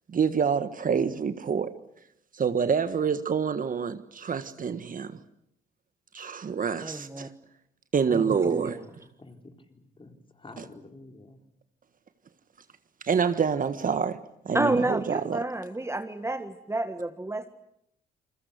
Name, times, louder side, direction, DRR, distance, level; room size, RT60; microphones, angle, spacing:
voice 1, 0.1-1.7 2.3-5.1 6.1-7.3 7.9-8.8 13.0-14.2 14.4-15.4, right 6 dB, 45° right, 1.5 m, -27 dB
voice 2, 6.8-7.3 8.1-8.8 14.5-17.5, right 2 dB, 15° right, 1.7 m, -30 dB
voice 3, 8.1-11.4, left 2 dB, 25° left, 4.1 m, -49 dB
29.0 x 21.0 x 8.2 m
supercardioid pair, 70°, 19 cm